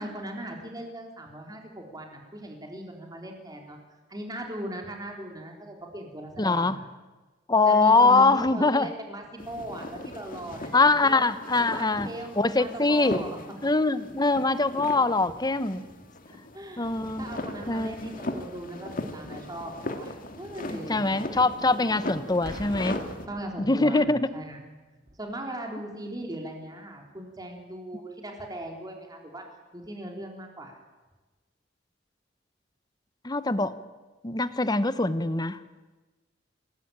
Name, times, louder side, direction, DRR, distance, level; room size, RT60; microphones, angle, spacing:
voice 1, 0.0-3.8 4.1-6.8 7.6-11.2 11.7-13.4 16.3-16.9 17.2-21.2 23.3-24.6 25.2-29.4 29.7-30.8, right 1 dB, 20° right, 2 dB, 3.8 m, -39 dB
voice 2, 6.4-6.8 7.5-8.9 10.7-12.1 12.4-13.3 13.6-15.9 16.8-17.3 17.7-18.1 20.7-23.0 23.6-24.3 33.2-33.7 34.2-35.6, left 3 dB, 25° left, 13 dB, 1.0 m, -23 dB
sound 1, 9.4-23.3, left 1 dB, 50° left, 2.4 m, -38 dB
sound 2, 21.2-27.4, equal, 5° left, 7.7 m, -62 dB
Boom, 22.4-24.2 25.1-25.3, right 1 dB, 60° right, 3.3 m, -43 dB
26.0 x 19.5 x 8.8 m, 1.2 s
head